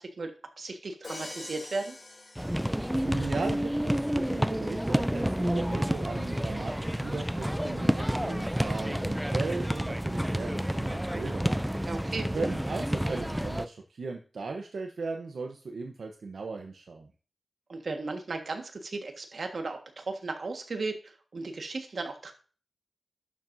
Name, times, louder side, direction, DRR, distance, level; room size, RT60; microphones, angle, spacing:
voice 1, 0.0-1.9 11.9-12.3 17.7-22.3, right 3 dB, 65° right, 4 dB, 1.5 m, -36 dB
Crash cymbal, 1.0-3.3, left 2 dB, 50° left, 2.7 m, -44 dB
sound 1, 2.4-13.7, equal, 5° right, 0.4 m, -29 dB
voice 2, 3.0-11.6 12.3-17.1, right 4 dB, 85° right, 3 dB, 0.9 m, -37 dB
11.5 x 7.4 x 2.7 m, 0.38 s
wide cardioid pair, 115°, 0 cm